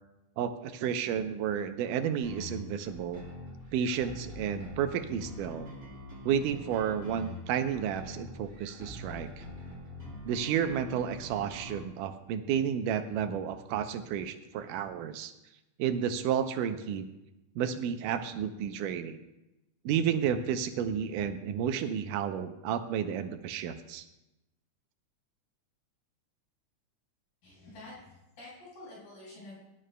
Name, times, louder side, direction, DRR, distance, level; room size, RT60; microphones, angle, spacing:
voice 1, 0.4-3.2 3.7-5.7 6.3-9.5 10.2-15.3 15.8-17.1 17.6-19.2 19.9-24.0, right 8 dB, 90° right, 8 dB, 2.3 m, -31 dB
sound 1, 2.2-11.8, left 1 dB, 30° right, 5.0 m, -44 dB
voice 2, 27.4-29.6, left 2 dB, 75° left, -7 dB, 5.8 m, -48 dB
20.5 x 11.5 x 2.2 m, 0.92 s
omnidirectional pair, 3.6 m